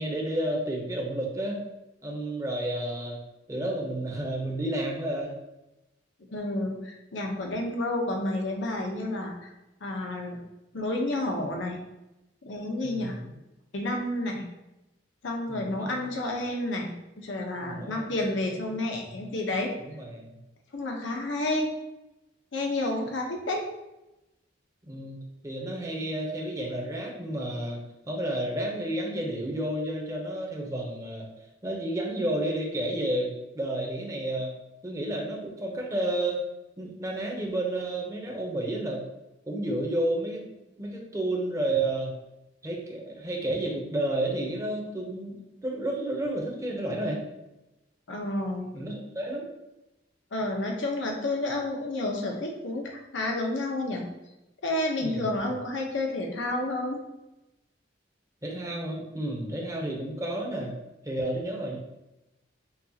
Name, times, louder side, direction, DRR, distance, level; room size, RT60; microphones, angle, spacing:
voice 1, 0.0-1.6 2.0-3.2 3.5-5.3 12.8-13.3 15.5-16.0 17.6-18.3 19.1-19.2 19.9-20.4 24.8-27.8 28.1-31.3 31.6-34.5 34.8-36.4 36.8-39.0 39.4-40.4 40.8-42.1 42.6-45.4 45.6-47.2 48.7-49.4 55.0-55.5 58.4-60.7 61.0-61.8, right 1 dB, 15° right, -1 dB, 0.8 m, -31 dB
voice 2, 6.3-9.5 9.8-10.4 10.7-11.8 12.4-13.2 13.7-14.5 15.2-19.7 20.7-21.7 22.5-23.7 48.1-48.7 50.3-54.1 54.6-57.0, left 1 dB, 80° left, 1 dB, 0.8 m, -30 dB
6.8 x 2.4 x 2.8 m, 0.95 s
head